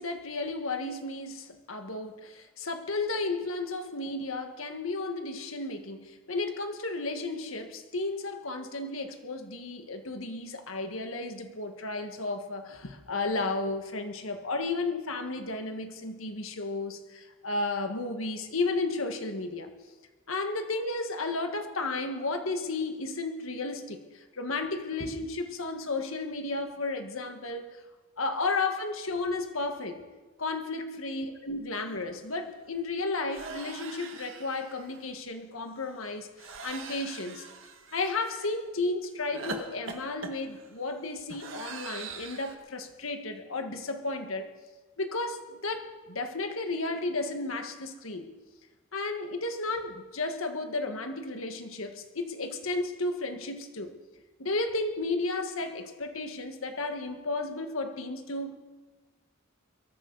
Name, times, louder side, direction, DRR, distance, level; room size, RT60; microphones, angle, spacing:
voice 1, 0.0-19.7 20.3-27.8 28.2-30.0 30.4-37.4 37.9-44.5 45.0-48.2 48.9-53.9 54.4-58.6, left 3 dB, 85° left, 5 dB, 1.7 m, -33 dB
sound 1, 31.9-32.0 32.2-32.5 33.3-35.0 36.4-38.6 39.3-42.6, right 4 dB, 70° right, 1.8 m, -42 dB
22.0 x 14.0 x 4.1 m, 1.2 s
head